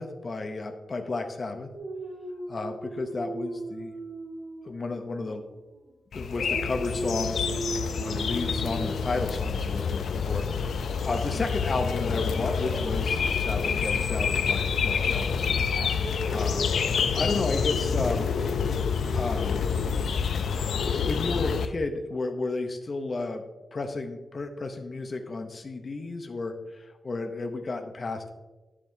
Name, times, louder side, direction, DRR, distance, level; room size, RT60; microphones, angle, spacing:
voice 1, 0.0-1.7 2.5-4.0 4.6-5.4 6.1-7.4 8.0-16.8 17.2-18.3 19.1-19.6 20.9-23.4 23.7-28.3, left 3 dB, 40° left, 5 dB, 0.7 m, -33 dB
Dog, 1.7-5.9 6.3-11.3 12.4-19.4, right 2 dB, 60° right, 1.6 m, -40 dB
sound 1, 6.1-21.7, left 6 dB, 80° left, 0.4 m, -27 dB
10.0 x 7.4 x 2.7 m, 1.2 s
wide cardioid pair, 150°, 0 cm